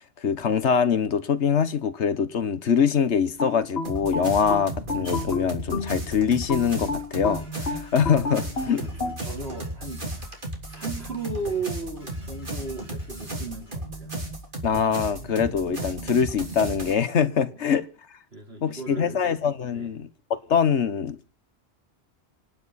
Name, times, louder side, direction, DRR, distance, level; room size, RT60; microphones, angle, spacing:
voice 1, 0.2-8.9 14.6-17.9 18.6-21.3, left 7 dB, 90° left, 1.5 m, -24 dB
sound 1, 3.4-6.0 6.5-9.2, left 3 dB, 65° left, 2.1 m, -30 dB
sound 2, 3.8-16.9, right 1 dB, 50° right, 3.5 m, -35 dB
Dishes pots and pans, 6.1-13.8, equal, 45° left, 7.9 m, -56 dB
voice 2, 8.6-10.1 10.7-14.2 17.5-17.6 18.3-19.2 19.7-19.9, right 3 dB, 65° right, 4.4 m, -35 dB
25.5 x 9.6 x 4.2 m
omnidirectional pair, 1.1 m